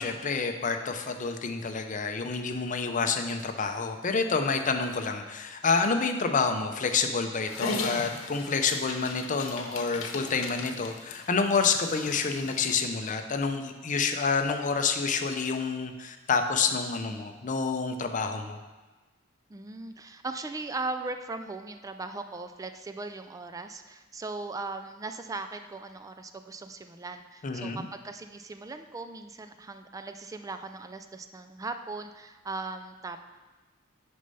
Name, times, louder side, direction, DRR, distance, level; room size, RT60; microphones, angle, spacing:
voice 1, 0.0-18.6 27.4-27.9, left 5 dB, 40° left, 6 dB, 0.6 m, -28 dB
Dog, 7.5-12.8, left 3 dB, 90° left, 0.9 m, -38 dB
voice 2, 19.5-33.3, right 3 dB, 15° right, 8 dB, 0.3 m, -38 dB
6.6 x 5.3 x 5.4 m, 1.2 s
head